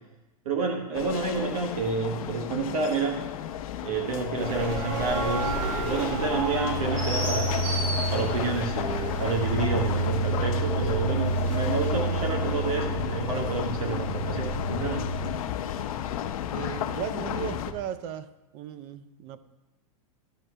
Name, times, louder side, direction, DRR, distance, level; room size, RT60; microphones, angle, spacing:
voice 1, 0.4-3.2 3.8-7.6 8.1-15.1, right 4 dB, 75° right, 2 dB, 1.4 m, -29 dB
sound 1, 0.9-17.7, left 10 dB, 70° left, 0.7 m, -33 dB
sound 2, 4.4-15.3, right 3 dB, 60° right, 2.9 m, -29 dB
voice 2, 16.5-18.3 18.5-19.4, right 9 dB, 35° right, 14 dB, 0.4 m, -36 dB
13.0 x 6.1 x 3.3 m, 1.1 s
supercardioid pair, 160°, 19 cm